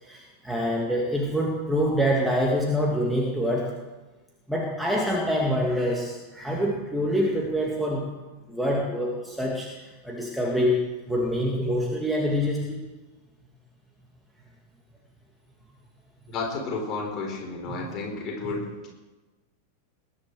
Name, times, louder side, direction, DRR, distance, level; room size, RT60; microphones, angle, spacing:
voice 1, 0.0-3.7 4.5-8.0 8.5-10.8 11.1-12.8, equal, ahead, -2 dB, 2.3 m, -26 dB
voice 2, 16.3-18.9, left 3 dB, 30° left, 0 dB, 4.9 m, -32 dB
20.5 x 10.5 x 5.0 m, 1.2 s
figure-of-eight pair, 90°, 0 cm